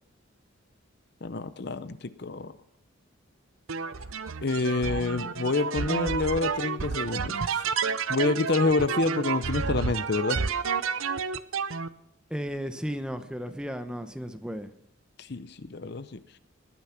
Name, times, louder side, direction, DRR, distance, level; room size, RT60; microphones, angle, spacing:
voice 1, 1.2-2.5 4.4-7.6 8.1-10.4 15.2-16.2, left 3 dB, 50° left, 14 dB, 0.7 m, -28 dB
sound 1, 3.7-11.9, right 5 dB, 85° right, 0.8 m, -30 dB
voice 2, 12.3-14.7, equal, 5° right, 8 dB, 0.9 m, -34 dB
20.0 x 9.5 x 5.9 m, 0.73 s
head